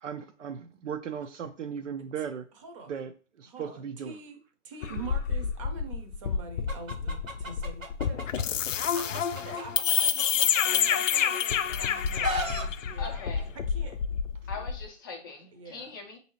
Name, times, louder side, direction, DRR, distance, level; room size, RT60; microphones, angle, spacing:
voice 1, 0.0-2.4 2.9-3.1 3.4-4.1 4.9-5.1, right 7 dB, 70° right, 0.5 m, -36 dB
voice 2, 2.5-3.1 3.4-4.4 4.6-8.2 8.6-14.0 15.5-15.9, right 3 dB, 25° right, 0.6 m, -46 dB
sound 1, 4.8-14.9, left 8 dB, 75° left, 0.5 m, -28 dB
Chicken rooster, 6.7-8.4 8.8-11.4 11.8-12.7, equal, 90° right, 0.9 m, -35 dB
voice 3, 13.0-13.4 14.5-16.2, left 4 dB, 15° left, 0.4 m, -41 dB
5.2 x 2.7 x 2.9 m
figure-of-eight pair, 135°, 39 cm